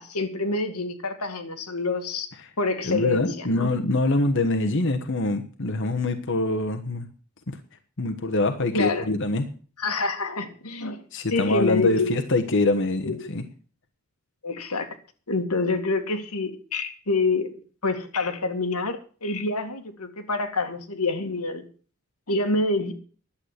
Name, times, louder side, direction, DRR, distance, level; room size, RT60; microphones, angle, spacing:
voice 1, 0.0-2.3 2.6-3.7 8.7-9.1 9.8-11.0 11.3-12.1 13.0-13.3 14.4-15.0 15.3-17.5 17.8-21.6 22.3-22.9, left 3 dB, 90° left, 6 dB, 2.1 m, -27 dB
voice 2, 2.8-7.1 7.5-7.6 8.0-9.5 11.1-13.4, left 2 dB, 55° left, 6 dB, 1.2 m, -24 dB
11.5 x 8.5 x 8.1 m, 0.40 s
head